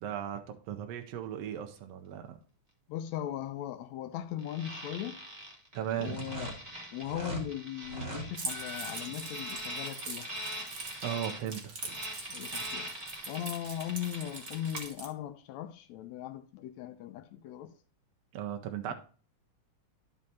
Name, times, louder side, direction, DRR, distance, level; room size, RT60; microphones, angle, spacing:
voice 1, 0.0-2.4 5.7-6.3 11.0-12.0 18.3-18.9, right 10 dB, 75° right, 1.5 m, -37 dB
voice 2, 2.9-5.2 6.0-6.6 6.9-10.3 12.3-12.9 13.3-17.7 18.9-19.0, left 11 dB, 75° left, 1.7 m, -38 dB
sound 1, 4.4-14.9, right 1 dB, 15° right, 1.5 m, -42 dB
sound 2, 6.1-7.5 7.8-8.3, right 3 dB, 30° right, 1.9 m, -39 dB
Keys jangling, 8.3-15.1, right 3 dB, 45° right, 1.1 m, -42 dB
12.5 x 5.4 x 2.8 m
omnidirectional pair, 3.6 m